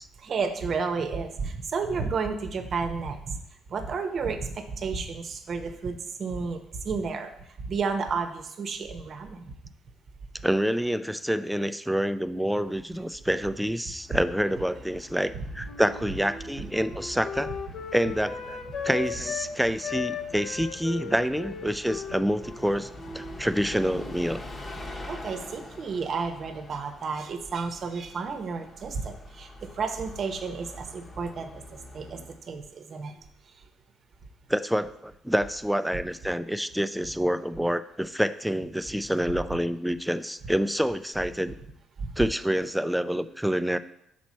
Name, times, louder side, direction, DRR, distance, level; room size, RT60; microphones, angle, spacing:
voice 1, 0.2-3.4 3.7-9.5 14.1-14.2 15.3-15.5 16.6-16.7 25.1-33.2 33.5-33.6 36.3-36.4 42.0-42.1, right 5 dB, 50° right, 7 dB, 0.8 m, -32 dB
voice 2, 10.4-17.5 17.9-18.6 18.8-22.9 23.1-24.4 34.5-41.5 42.2-43.8, equal, ahead, 12 dB, 0.3 m, -27 dB
Bus, 13.9-32.5, left 1 dB, 35° left, 1.0 m, -45 dB
Wind instrument woodwind instrument, 15.6-19.5 19.8-23.4 23.6-24.2, left 6 dB, 60° left, 0.7 m, -37 dB
6.0 x 4.4 x 4.3 m, 0.79 s
supercardioid pair, 80°, 0 cm